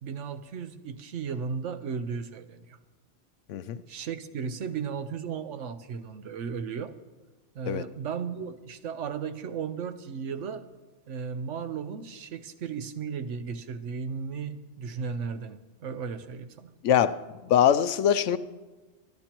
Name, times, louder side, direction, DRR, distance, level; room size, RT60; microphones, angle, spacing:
voice 1, 0.0-2.8 3.9-6.9 7.5-10.6 11.1-16.7, right 6 dB, 90° right, 11 dB, 1.1 m, -35 dB
voice 2, 3.5-3.8 7.7-7.8 16.8-18.4, left 9 dB, 90° left, 12 dB, 1.0 m, -23 dB
25.0 x 11.5 x 3.0 m, 1.3 s
omnidirectional pair, 1.2 m